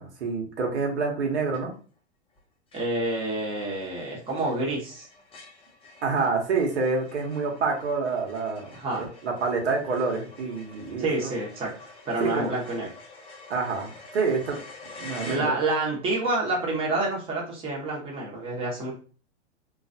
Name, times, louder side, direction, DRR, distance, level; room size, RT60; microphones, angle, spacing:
voice 1, 0.0-1.7 6.0-11.3 12.2-12.5 13.5-14.6 15.0-15.5, right 4 dB, 70° right, 0 dB, 1.0 m, -27 dB
sound 1, 1.5-2.0 2.3-2.4 2.7-16.0, left 3 dB, 15° left, 0.7 m, -48 dB
voice 2, 2.7-5.1 8.7-9.1 11.0-11.7 12.1-12.9 15.2-18.9, right 2 dB, 15° right, -4 dB, 1.0 m, -28 dB
3.1 x 2.4 x 2.6 m, 0.39 s
hypercardioid pair, 110°, 35 cm